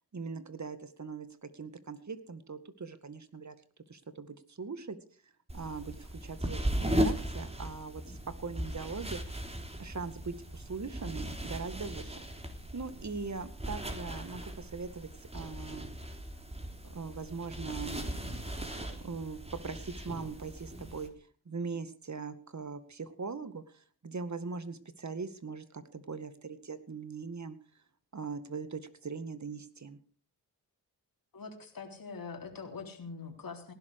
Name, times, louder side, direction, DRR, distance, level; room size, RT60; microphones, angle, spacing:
voice 1, 0.1-3.6 3.9-5.0 5.5-9.4 9.8-12.1 12.7-15.9 16.8-21.1 21.5-27.6 28.1-30.0, right 4 dB, 45° right, 12 dB, 2.1 m, -41 dB
sound 1, 5.5-21.1, equal, 15° right, 3.5 m, -37 dB
voice 2, 31.3-33.7, left 5 dB, 60° left, 4 dB, 3.8 m, -43 dB
18.5 x 12.0 x 4.9 m, 0.40 s
cardioid pair, 50°, 39 cm